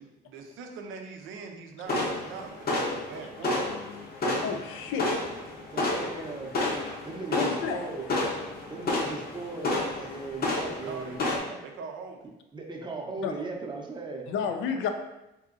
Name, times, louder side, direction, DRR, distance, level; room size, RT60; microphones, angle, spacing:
voice 1, 0.2-3.8 10.8-11.4 11.6-12.3 14.7-14.9, right 5 dB, 85° right, 3 dB, 0.5 m, -42 dB
sound 1, 1.9-11.4, left 2 dB, 50° left, 0.7 m, -31 dB
voice 2, 4.4-5.1 7.4-7.8 13.2-13.3 14.3-14.9, left 7 dB, 85° left, 6 dB, 0.4 m, -30 dB
voice 3, 5.7-6.5 7.0-8.1 8.7-11.2 12.5-14.3, right 3 dB, 25° right, 0 dB, 0.6 m, -37 dB
3.7 x 2.7 x 2.4 m, 0.93 s
cardioid pair, 90°, 20 cm